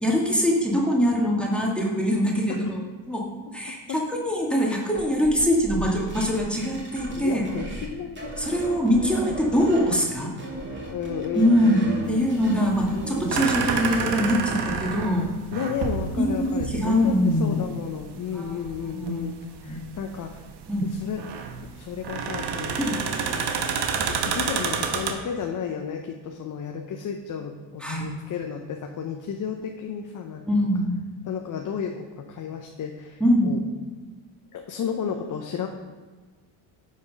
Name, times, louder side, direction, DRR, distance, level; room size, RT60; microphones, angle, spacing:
voice 1, 0.0-2.8 3.1-3.3 3.5-7.4 8.4-10.3 11.4-11.8 12.1-15.3 16.2-17.6 18.3-18.6 18.9-19.2 19.7-19.8 20.7-20.9 22.8-23.0 27.8-28.0 30.5-31.0 33.2-33.5, equal, ahead, -2 dB, 1.9 m, -23 dB
sound 1, 4.9-7.9 8.2-10.0 10.4-14.1, right 2 dB, 25° right, 2.3 m, -36 dB
voice 2, 7.1-8.9 10.9-12.3 15.5-17.1 17.4-19.3 19.6-20.4 20.8-21.2 21.7-23.0 23.9-30.5 31.2-33.6 34.5-35.7, left 7 dB, 40° left, 3 dB, 0.9 m, -33 dB
sound 2, 12.0-25.1, right 6 dB, 55° right, 1.1 m, -29 dB
9.7 x 4.4 x 5.3 m, 1.4 s
supercardioid pair, 85°, 47 cm